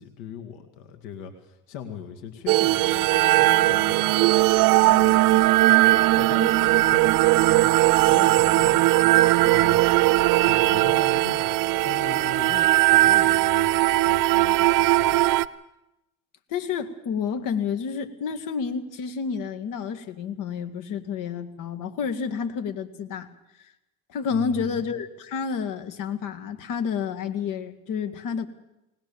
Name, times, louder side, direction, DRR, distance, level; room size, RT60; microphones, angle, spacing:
voice 1, 0.0-4.5 4.8-5.6 6.1-9.8 10.4-15.2 24.3-24.8, left 8 dB, 80° left, 5 dB, 2.2 m, -40 dB
sound 1, 2.5-15.5, right 18 dB, 60° right, 0.7 m, -19 dB
voice 2, 16.5-23.3 24.1-28.5, left 6 dB, 55° left, 8 dB, 2.2 m, -30 dB
21.0 x 19.5 x 7.1 m, 0.92 s
supercardioid pair, 100°, 37 cm